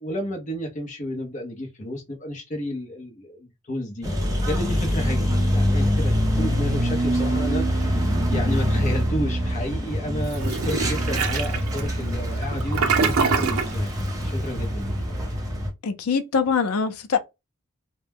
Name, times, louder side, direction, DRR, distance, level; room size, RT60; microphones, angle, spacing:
voice 1, 0.0-14.9, equal, 35° left, 0.6 m, -32 dB
sound 1, 4.0-15.7, equal, 15° right, 0.6 m, -24 dB
Toilet flush, 10.3-13.8, right 5 dB, 80° right, 0.5 m, -25 dB
voice 2, 15.8-17.2, left 5 dB, 85° left, 0.5 m, -23 dB
2.2 x 2.0 x 3.3 m
head